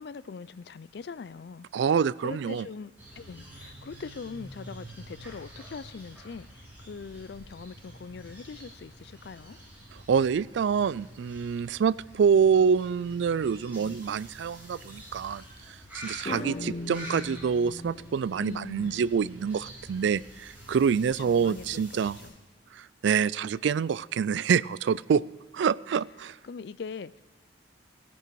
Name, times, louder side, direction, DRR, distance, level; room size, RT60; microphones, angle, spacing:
voice 1, 0.0-1.7 2.2-9.6 18.4-19.0 21.1-21.7 21.9-22.3 26.2-27.2, left 5 dB, 60° left, 19 dB, 0.4 m, -42 dB
voice 2, 1.7-2.6 10.1-15.4 15.9-22.2 22.7-25.2 25.5-26.4, right 6 dB, 70° right, 21 dB, 0.3 m, -26 dB
sound 1, 3.0-22.3, right 1 dB, 10° right, 4.9 m, -47 dB
sound 2, 13.5-14.0 16.2-18.2, left 2 dB, 40° left, 0.9 m, -39 dB
17.5 x 10.0 x 4.6 m, 1.4 s
head